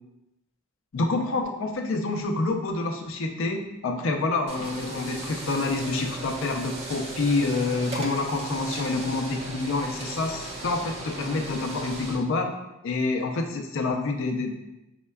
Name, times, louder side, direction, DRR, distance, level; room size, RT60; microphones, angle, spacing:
voice 1, 0.9-12.5 12.8-14.6, left 3 dB, 65° left, 3 dB, 0.4 m, -27 dB
sound 1, 4.5-12.1, right 2 dB, 30° right, 0.6 m, -37 dB
5.3 x 2.2 x 2.2 m, 0.96 s
head